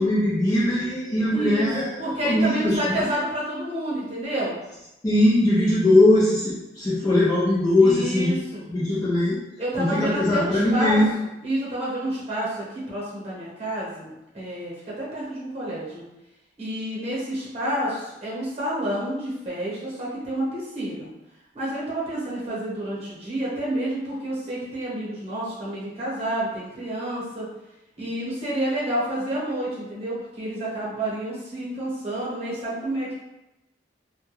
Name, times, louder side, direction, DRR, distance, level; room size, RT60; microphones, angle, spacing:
voice 1, 0.0-1.9 2.2-3.1 5.0-8.4 8.7-9.4 9.8-11.1, left 1 dB, 20° left, -9 dB, 0.5 m, -20 dB
voice 2, 1.3-1.7 2.0-4.6 7.8-8.6 9.6-16.0 16.6-21.1 21.5-27.5 28.0-33.1, right 1 dB, 35° right, -6 dB, 1.0 m, -29 dB
2.2 x 2.2 x 3.0 m, 0.94 s
head